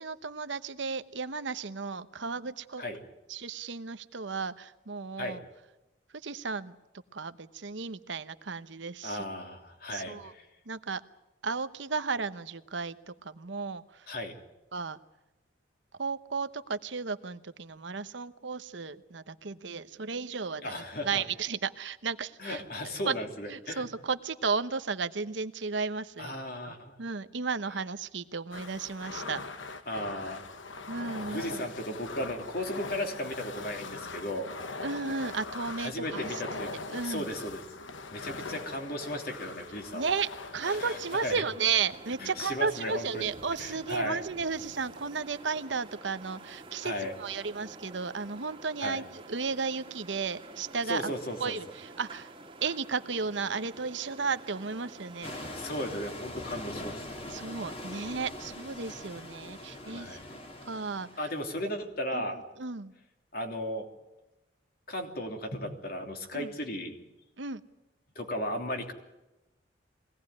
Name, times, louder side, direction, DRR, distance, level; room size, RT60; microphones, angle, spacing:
voice 1, 0.0-2.8 3.3-5.4 6.2-6.7 7.1-9.2 9.9-10.3 10.7-11.0 11.4-14.1 14.7-15.0 16.0-20.7 21.0-22.6 23.1-23.2 23.5-26.3 26.6-29.4 30.9-31.6 34.8-36.4 36.9-37.3 39.9-46.9 47.2-51.1 51.4-52.3 52.6-55.3 57.3-60.2 60.7-61.1 62.1-62.3 62.6-62.9 66.3-66.5 67.4-67.6, right 5 dB, 70° right, 11 dB, 0.9 m, -34 dB
voice 2, 9.0-10.5 14.1-14.3 20.6-21.2 22.4-23.9 26.2-26.9 29.9-30.4 31.2-34.5 35.8-37.6 38.1-40.2 40.6-41.4 42.2-43.3 43.6-44.2 46.8-47.1 48.8-49.0 50.9-51.6 55.5-57.1 59.8-60.3 61.2-62.4 63.3-63.9 64.9-66.9 68.1-68.9, left 1 dB, 50° left, 4 dB, 3.1 m, -36 dB
sound 1, 28.5-41.4, left 3 dB, 80° left, 1.2 m, -41 dB
sound 2, 40.5-55.7, right 2 dB, 25° right, 2.0 m, -49 dB
sound 3, 55.2-61.5, left 1 dB, 30° left, 2.5 m, -42 dB
22.5 x 18.0 x 9.7 m, 0.98 s
head